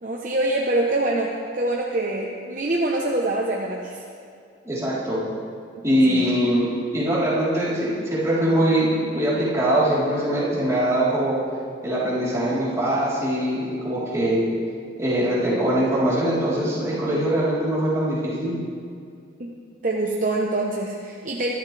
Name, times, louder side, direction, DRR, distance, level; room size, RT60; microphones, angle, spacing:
voice 1, 0.0-4.0 5.7-6.2 19.4-19.5 19.8-21.5, right 2 dB, 40° right, -1 dB, 1.0 m, -25 dB
voice 2, 4.6-5.2 5.8-11.4 11.8-14.4 15.0-18.6, right 1 dB, 15° right, -9 dB, 3.9 m, -22 dB
23.0 x 12.5 x 3.4 m, 2.3 s
head